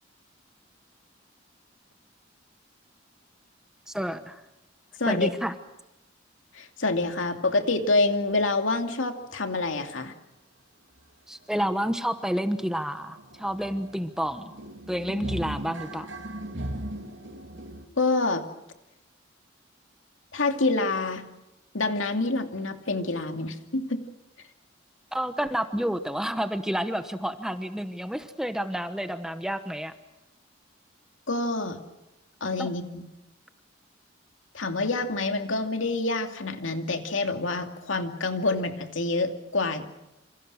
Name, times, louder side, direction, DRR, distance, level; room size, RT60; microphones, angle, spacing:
voice 1, 3.9-4.4 5.1-5.6 11.3-14.4 14.9-16.1 25.1-29.9 32.6-32.7, equal, 5° right, 9 dB, 1.0 m, -29 dB
voice 2, 5.0-5.3 6.5-10.1 18.0-18.4 20.3-21.2 21.7-24.1 31.3-31.8 32.4-33.0 34.5-39.9, left 3 dB, 90° left, 5 dB, 2.5 m, -27 dB
sound 1, 11.0-11.1 11.4-11.5 11.8-17.8, right 1 dB, 75° right, 2.9 m, -38 dB
28.0 x 27.0 x 6.4 m, 0.94 s
head